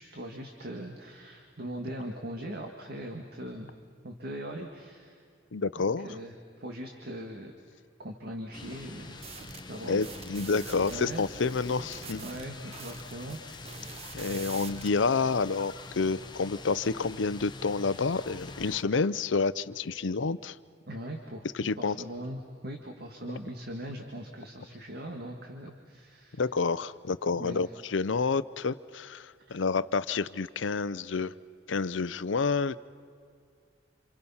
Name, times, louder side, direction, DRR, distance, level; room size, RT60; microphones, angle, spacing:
voice 1, 0.0-3.7 4.0-5.2 5.8-7.5 8.0-9.2 9.7-10.0 10.3-10.4 10.9-11.2 11.8-11.9 12.1-13.8 18.7-18.8 20.9-26.4 27.4-27.7 29.4-29.6, right 1 dB, 55° right, 3 dB, 1.9 m, -40 dB
voice 2, 5.5-6.1 9.9-12.2 14.1-20.6 21.5-22.0 26.4-31.3 31.7-32.8, left 4 dB, 80° left, 16 dB, 0.6 m, -29 dB
sound 1, 8.5-18.8, left 3 dB, 25° left, 1.1 m, -45 dB
sound 2, 9.2-14.9, right 6 dB, 35° right, 0.8 m, -46 dB
28.0 x 27.5 x 5.6 m, 2.2 s
head